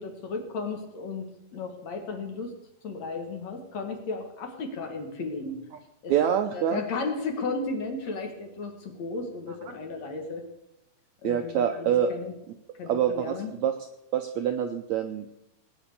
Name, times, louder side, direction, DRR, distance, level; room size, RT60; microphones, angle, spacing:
voice 1, 0.0-2.5 2.8-5.6 6.0-6.1 6.5-10.4 11.2-12.3 12.8-13.5, left 3 dB, 50° left, 4 dB, 3.0 m, -34 dB
voice 2, 6.1-6.8 11.2-12.1 12.8-13.7 14.1-15.4, right 9 dB, 90° right, 7 dB, 1.6 m, -26 dB
19.0 x 10.0 x 6.9 m, 0.84 s
omnidirectional pair, 4.3 m